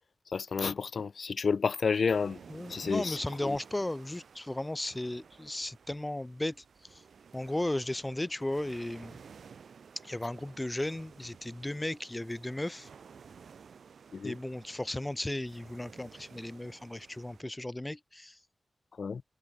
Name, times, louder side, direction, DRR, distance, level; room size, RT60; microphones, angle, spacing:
voice 1, 0.3-2.4 2.7-3.6 14.1-14.4 19.0-19.2, left 5 dB, 70° left, 0.5 m, -30 dB
sound 1, 2.1-17.4, right 6 dB, 80° right, 5.7 m, -54 dB
voice 2, 2.5-6.6 6.9-7.0 7.3-9.2 10.0-12.9 14.2-18.4, left 1 dB, 20° left, 0.5 m, -35 dB
cardioid pair, 55°, 0 cm